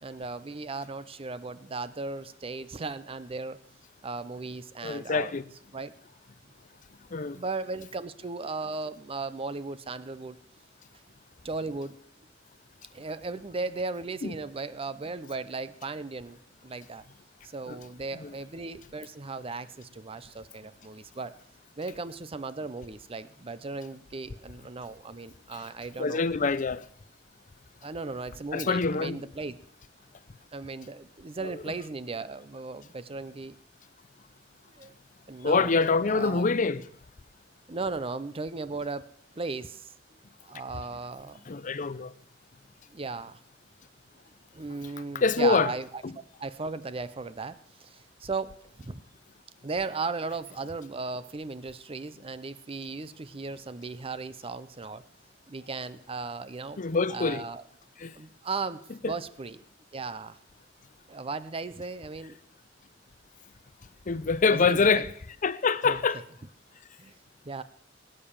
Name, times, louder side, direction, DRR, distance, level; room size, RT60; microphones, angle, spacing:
voice 1, 0.0-3.6 4.0-5.3 5.7-5.9 7.2-10.4 11.4-12.0 12.9-17.0 17.4-21.4 21.8-26.2 27.8-29.6 30.5-33.5 34.8-34.9 35.3-35.7 36.1-36.5 37.7-39.1 39.4-39.9 40.4-41.5 42.9-43.4 44.5-46.0 46.4-49.0 49.6-55.1 55.5-56.8 57.1-57.6 58.2-59.6 59.9-60.4 61.1-62.4 64.5-65.1 65.8-66.0 67.0-67.1 67.5-67.6, right 3 dB, 30° right, 0.6 m, -36 dB
voice 2, 4.8-5.4 7.1-7.4 14.2-14.3 17.7-17.8 18.2-18.3 26.0-26.9 28.5-29.2 31.4-31.5 35.4-36.8 41.5-42.1 45.1-45.7 46.0-46.1 56.8-57.4 58.0-58.1 59.0-59.1 64.1-65.1 65.4-66.2, left 4 dB, 45° left, 0.6 m, -25 dB
19.0 x 8.8 x 7.2 m
head